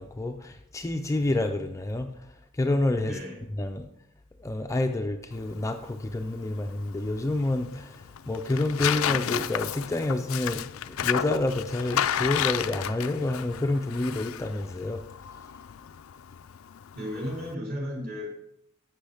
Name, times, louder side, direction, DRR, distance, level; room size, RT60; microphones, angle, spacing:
voice 1, 0.0-3.2 3.6-3.9 4.4-15.0, left 2 dB, 15° left, 5 dB, 0.4 m, -29 dB
voice 2, 3.0-3.4 16.9-18.5, equal, 45° right, -2 dB, 3.3 m, -34 dB
Tearing, 5.3-17.5, left 9 dB, 85° left, 0.4 m, -33 dB
11.5 x 7.8 x 3.4 m, 0.78 s
head